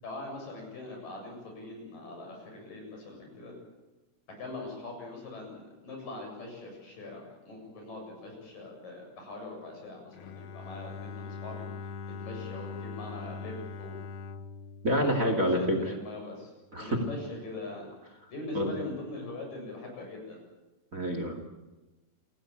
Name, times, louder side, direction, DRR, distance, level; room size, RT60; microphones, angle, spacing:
voice 1, 0.0-3.6 4.4-11.7 12.2-14.1 15.1-17.9 18.3-20.4, left 2 dB, 85° left, 1 dB, 9.1 m, -42 dB
Bowed string instrument, 10.1-16.0, left 5 dB, 65° left, 1.5 m, -42 dB
voice 2, 14.8-15.8 16.7-17.0 18.5-18.7 20.9-21.4, equal, 25° right, 5 dB, 2.5 m, -27 dB
28.5 x 16.0 x 8.8 m, 1.1 s
omnidirectional pair, 3.8 m